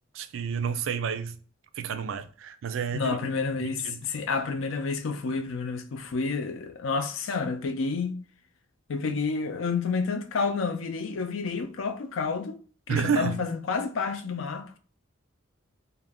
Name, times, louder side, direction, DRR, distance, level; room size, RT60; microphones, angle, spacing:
voice 1, 0.1-1.4 1.8-3.2 3.6-4.0 12.9-13.4, right 7 dB, 75° right, 0.3 m, -30 dB
voice 2, 2.9-8.2 8.9-12.6 12.9-14.8, left 4 dB, 80° left, 0.4 m, -29 dB
2.4 x 2.1 x 3.4 m
head